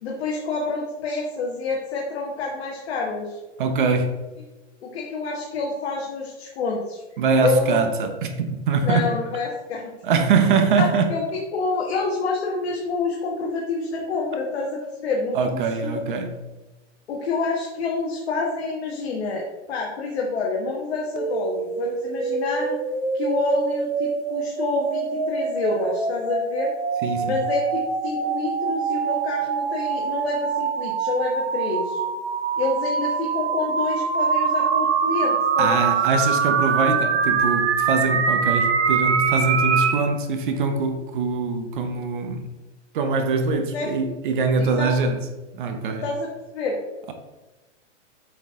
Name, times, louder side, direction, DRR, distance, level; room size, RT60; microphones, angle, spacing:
voice 1, 0.0-3.4 4.8-7.0 7.4-7.8 8.8-9.9 10.8-16.0 17.1-22.8 23.1-26.7 27.2-32.0 32.6-35.7 43.7-43.9 44.6-44.9 46.0-46.3 46.5-46.8, left 3 dB, 60° left, 1.3 m, -27 dB
voice 2, 3.6-4.2 7.2-9.1 10.0-11.1 15.3-16.4 27.0-27.4 35.6-42.5 42.9-45.2 45.5-46.1, right 4 dB, 45° right, 0.8 m, -23 dB
sound 1, 21.2-40.0, right 6 dB, 65° right, 1.1 m, -24 dB
7.9 x 4.5 x 3.6 m
hypercardioid pair, 170°, 36 cm